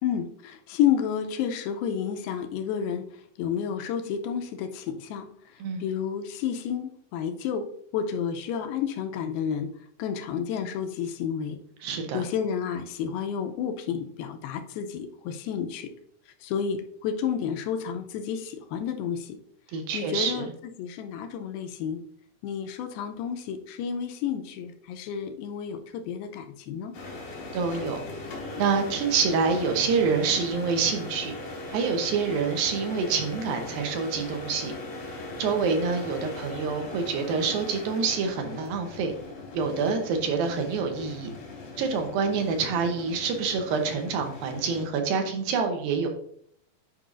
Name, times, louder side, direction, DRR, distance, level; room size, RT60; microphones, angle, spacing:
voice 1, 0.0-3.0 3.4-7.7 7.9-9.7 10.0-11.6 11.9-15.9 16.4-19.4 19.9-22.0 22.4-27.0, left 8 dB, 85° left, 7 dB, 2.4 m, -30 dB
voice 2, 11.8-12.2 19.7-20.4 27.5-28.0 28.6-31.4 31.7-34.7 35.4-39.1 39.5-41.3 41.8-46.1, right 5 dB, 80° right, 4 dB, 2.6 m, -27 dB
sound 1, 26.9-44.9, left 2 dB, 70° left, 3.6 m, -39 dB
9.3 x 5.3 x 2.5 m, 0.66 s
omnidirectional pair, 4.3 m